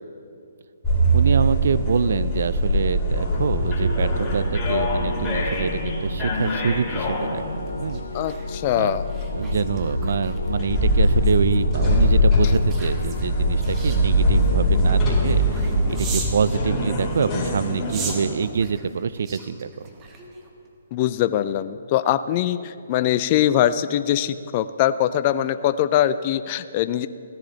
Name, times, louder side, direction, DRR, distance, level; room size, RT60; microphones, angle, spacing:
sound 1, 0.8-18.3, equal, 20° left, 2.8 m, -22 dB
voice 1, 1.1-7.4 7.7-8.0 8.7-9.0 9.3-19.9, right 6 dB, 65° right, 16 dB, 0.4 m, -25 dB
sound 2, 2.8-14.7, left 3 dB, 90° left, 0.6 m, -37 dB
sound 3, 5.3-16.4 17.0-20.7 21.1-21.3, right 4 dB, 25° right, 1.4 m, -40 dB
voice 2, 8.1-9.0 20.9-27.1, left 11 dB, 35° left, 13 dB, 0.4 m, -22 dB
15.5 x 10.5 x 4.0 m, 2.4 s
hypercardioid pair, 140°, 0 cm